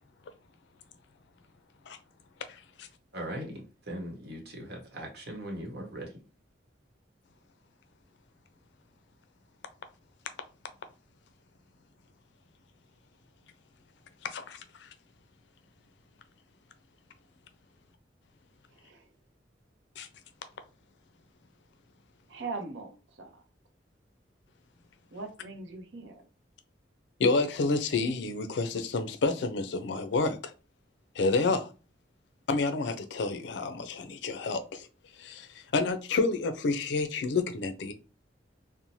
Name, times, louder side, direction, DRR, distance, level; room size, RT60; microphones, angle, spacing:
voice 1, 3.1-6.1, right 1 dB, 60° right, 1.0 m, -39 dB
voice 2, 14.3-14.9 20.0-20.1 27.2-30.5 31.2-31.7 32.5-34.9 35.2-37.9, left 3 dB, 65° left, 0.4 m, -29 dB
voice 3, 18.7-19.1 22.3-23.4 25.1-26.3, right 3 dB, 85° right, 0.7 m, -41 dB
3.0 x 2.1 x 2.6 m
head